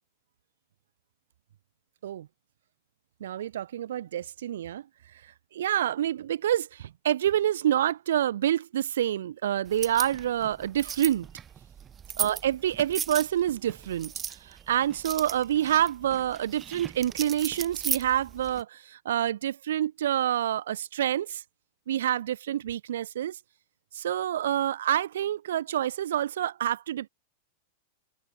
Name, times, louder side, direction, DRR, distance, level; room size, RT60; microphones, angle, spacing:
voice 1, 3.2-4.8 5.5-11.3 12.2-21.4 21.9-23.4 23.9-27.1, right 11 dB, 80° right, 1.8 m, -27 dB
sound 1, 9.7-18.6, right 8 dB, 20° right, 0.8 m, -37 dB
supercardioid pair, 135°, 0 cm